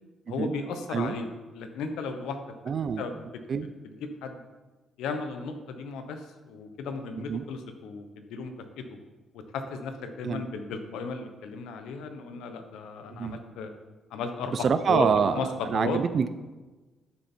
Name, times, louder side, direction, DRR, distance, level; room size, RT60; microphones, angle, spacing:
voice 1, 0.3-1.3 1.5-2.4 3.0-3.3 3.8-4.4 5.0-9.0 9.3-13.7 14.1-15.1 15.3-15.5 15.7-16.0, left 4 dB, 90° left, 7 dB, 1.1 m, -35 dB
voice 2, 2.7-3.0 3.5-3.7 7.3-7.4 10.2-10.4 13.1-13.4 14.5-16.3, right 6 dB, 50° right, 12 dB, 0.6 m, -26 dB
11.0 x 7.0 x 4.5 m, 1.2 s
cardioid pair, 90°, 0 cm